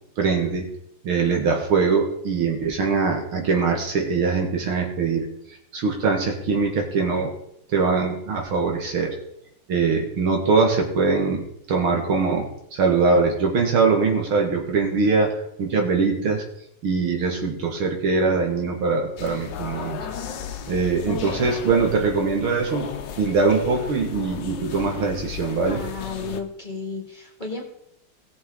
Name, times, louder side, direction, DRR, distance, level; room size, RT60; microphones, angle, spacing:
voice 1, 0.2-0.7 1.0-5.3 5.7-7.3 7.7-9.2 9.7-16.4 16.8-20.1 20.7-22.9 23.2-25.8, right 4 dB, 80° right, 2 dB, 2.7 m, -22 dB
sound 1, 19.2-26.4, left 8 dB, 65° left, 1.5 m, -35 dB
voice 2, 25.7-27.6, left 4 dB, 20° left, -1 dB, 2.1 m, -33 dB
17.5 x 7.0 x 3.9 m, 0.74 s
omnidirectional pair, 2.3 m